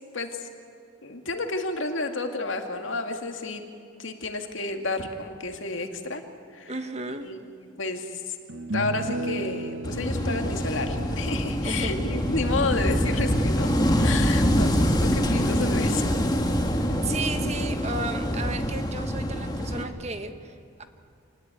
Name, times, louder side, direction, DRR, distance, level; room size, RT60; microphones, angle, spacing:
voice 1, 0.1-0.5 1.0-3.6 4.0-6.2 6.5-6.7 7.2-8.4 8.7-16.1, left 3 dB, 75° left, 5 dB, 2.3 m, -31 dB
voice 2, 6.7-7.3 11.6-12.2 17.0-20.8, right 3 dB, 35° right, 7 dB, 1.4 m, -34 dB
sound 1, 7.4-7.5 8.5-13.8, right 2 dB, 70° right, 0.9 m, -36 dB
Wind / Waves surf, 9.8-19.8, equal, 20° left, 1.9 m, -25 dB
27.0 x 19.5 x 9.4 m, 2.5 s
head